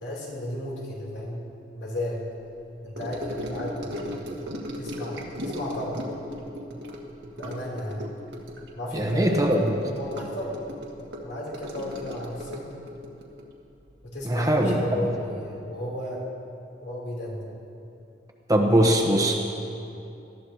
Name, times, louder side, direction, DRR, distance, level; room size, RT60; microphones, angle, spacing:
voice 1, 0.0-2.2 2.8-4.2 4.8-6.0 7.4-8.0 8.7-10.6 11.2-12.7 14.0-16.2 16.8-17.4, left 1 dB, 75° left, -4 dB, 3.3 m, -34 dB
Gurgling / Sink (filling or washing) / Trickle dribble, 3.0-14.6 14.9-15.2 15.5-15.6, equal, 85° right, 1.6 m, -37 dB
voice 2, 8.9-9.8 14.2-15.0 18.5-19.4, right 1 dB, 20° right, 1 dB, 1.0 m, -21 dB
19.5 x 13.5 x 2.9 m, 2.7 s
head